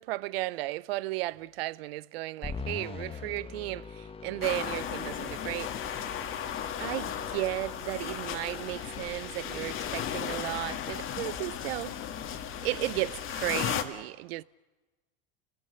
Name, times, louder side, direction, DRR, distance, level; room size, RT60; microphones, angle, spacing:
voice 1, 0.0-6.1 6.8-12.0 12.6-14.4, right 19 dB, 80° right, 0.7 m, -34 dB
sound 1, 2.4-11.8, left 5 dB, 20° left, 1.2 m, -44 dB
sound 2, 4.4-13.8, left 9 dB, 45° left, 1.9 m, -35 dB
27.0 x 20.0 x 6.7 m
supercardioid pair, 115°, 29 cm